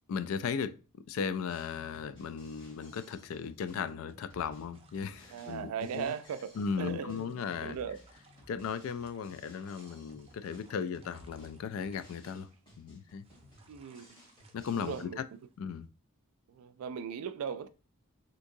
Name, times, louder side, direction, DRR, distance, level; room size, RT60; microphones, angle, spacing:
voice 1, 0.1-0.7 1.1-6.1 6.6-7.8 8.5-12.5 12.8-13.2 14.5-15.2 15.6-15.9, left 6 dB, 65° left, 0.3 m, -36 dB
Drum kit, 1.5-15.0, equal, 20° left, 1.8 m, -58 dB
sound 1, 4.7-15.8, right 3 dB, 25° right, 0.6 m, -64 dB
voice 2, 5.3-6.4 6.8-7.2 7.6-8.0 13.7-14.0 14.7-15.2 16.5-17.7, right 7 dB, 85° right, 0.3 m, -38 dB
3.5 x 2.8 x 2.6 m
head